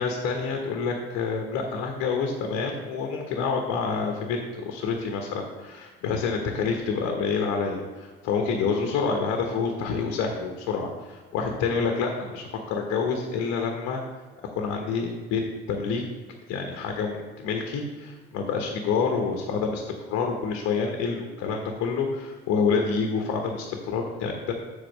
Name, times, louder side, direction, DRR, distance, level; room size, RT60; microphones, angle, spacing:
voice 1, 0.0-14.0 14.5-15.4 15.7-16.0 16.5-19.8 20.1-24.5, left 5 dB, 55° left, 3 dB, 1.1 m, -28 dB
7.7 x 4.1 x 6.3 m, 1.4 s
figure-of-eight pair, 55°, 31 cm